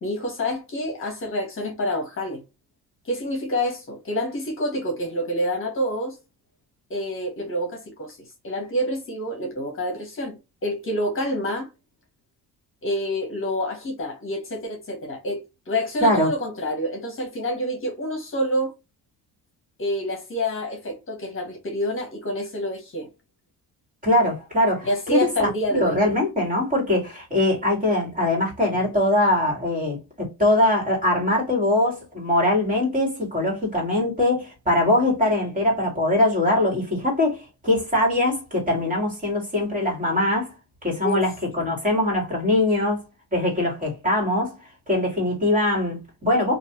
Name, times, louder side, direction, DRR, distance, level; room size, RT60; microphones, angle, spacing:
voice 1, 0.0-2.4 3.0-6.2 6.9-8.2 8.4-11.7 12.8-18.7 19.8-23.1 24.8-26.0 41.0-41.3, equal, 35° left, 1.1 m, -27 dB
voice 2, 24.0-25.3 25.8-40.5 40.8-43.1 43.3-44.6 44.9-46.6, left 1 dB, 25° right, 2.1 m, -22 dB
3.1 x 2.6 x 2.8 m
cardioid pair, 130°, 34 cm